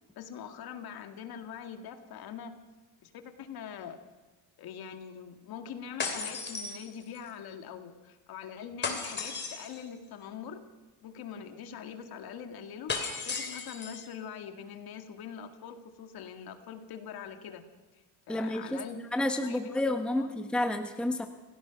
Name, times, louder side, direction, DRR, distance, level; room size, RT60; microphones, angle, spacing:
voice 1, 0.2-2.6 3.0-4.0 4.6-10.6 11.0-17.7 17.9-19.0 19.4-19.8 20.2-20.3, left 8 dB, 55° left, 7 dB, 2.0 m, -43 dB
sound 1, 6.0-7.3 8.8-9.8 12.9-14.1, left 4 dB, 25° left, 2.9 m, -35 dB
voice 2, 18.3-18.8 19.1-21.3, left 1 dB, ahead, 5 dB, 1.1 m, -30 dB
27.5 x 17.0 x 5.9 m, 1.3 s
cardioid pair, 150°, 44 cm